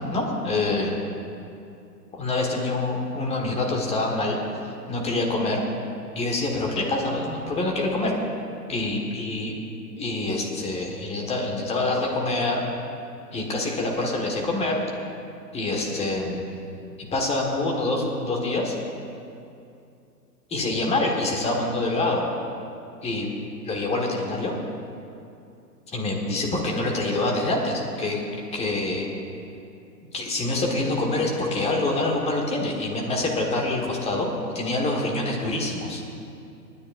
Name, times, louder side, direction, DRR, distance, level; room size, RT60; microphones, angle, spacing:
voice 1, 0.1-1.0 2.1-4.4 4.9-5.6 6.1-8.1 8.7-9.6 10.0-12.6 13.3-14.8 15.5-16.4 17.0-18.7 20.5-22.2 23.0-23.3 23.7-24.5 25.9-28.2 28.5-29.1 30.1-36.0, left 2 dB, 10° left, 0 dB, 1.6 m, -26 dB
29.0 x 10.0 x 2.6 m, 2.6 s
figure-of-eight pair, 120°, 49 cm